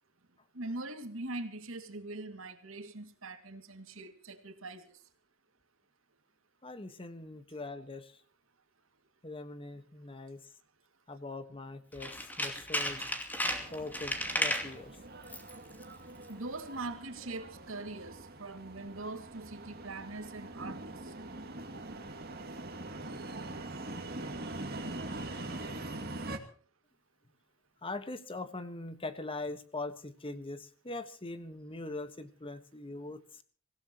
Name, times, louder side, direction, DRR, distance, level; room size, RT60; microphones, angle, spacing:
voice 1, 0.5-4.9 13.0-13.1 16.3-21.1, right 2 dB, 70° right, 2.3 m, -42 dB
voice 2, 6.6-8.2 9.2-10.5 11.1-13.2 13.7-15.0 27.8-33.4, left 2 dB, 25° left, 1.4 m, -42 dB
Tools, 11.9-14.7 15.2-15.6 15.8-15.9, left 1 dB, 10° left, 2.8 m, -34 dB
sound 1, 13.5-26.4, right 2 dB, 50° right, 2.4 m, -43 dB
26.0 x 17.0 x 3.0 m
head